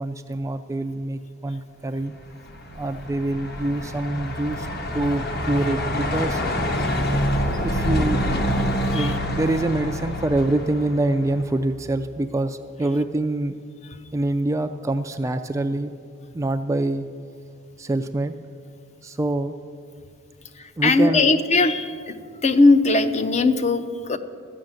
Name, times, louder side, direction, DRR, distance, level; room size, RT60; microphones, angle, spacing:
voice 1, 0.0-2.2 2.7-4.7 4.9-6.4 7.6-8.2 8.9-13.6 14.1-15.9 16.3-17.1 17.8-18.3 19.0-19.5 20.8-21.3, right 2 dB, 15° right, 8 dB, 0.3 m, -25 dB
Truck, 2.2-11.6, equal, 50° left, 1.1 m, -26 dB
voice 2, 20.8-22.2 22.4-24.2, left 3 dB, 35° left, 9 dB, 0.6 m, -19 dB
13.0 x 6.3 x 8.9 m, 2.2 s
head